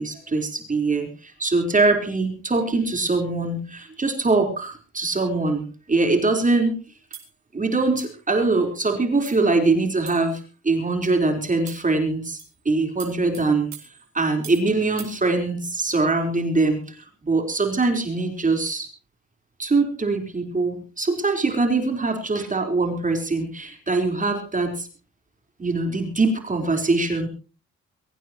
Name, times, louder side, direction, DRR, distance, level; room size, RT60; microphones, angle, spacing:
voice 1, 0.0-6.7 7.5-12.4 12.7-13.7 14.1-17.0 17.2-18.9 19.6-24.9 25.6-27.3, right 3 dB, 25° right, 4 dB, 4.1 m, -23 dB
sound 1, 7.1-7.3 8.0-8.2 8.8-8.9 9.2-9.5 10.1-10.4 11.0-11.2 11.7-11.9 12.4-12.6 13.0-14.7 15.0-15.2, right 9 dB, 60° right, 4.8 m, -42 dB
23.5 x 16.5 x 3.0 m, 0.36 s
cardioid pair, 90°, 30 cm